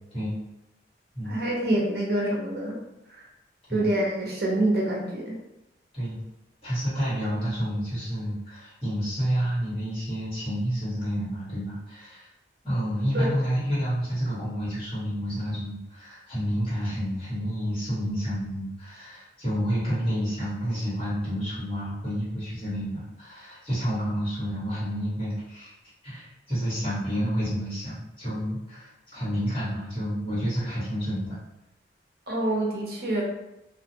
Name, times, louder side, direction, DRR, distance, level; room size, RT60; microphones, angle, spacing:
voice 1, 1.3-2.8 3.1-3.2 3.7-5.4 13.1-13.3 32.3-33.2, right 1 dB, 55° right, -2 dB, 0.7 m, -26 dB
voice 2, 6.6-12.3 12.6-25.7 26.0-31.3, equal, 30° left, -11 dB, 1.4 m, -29 dB
2.5 x 2.3 x 2.7 m, 0.91 s
head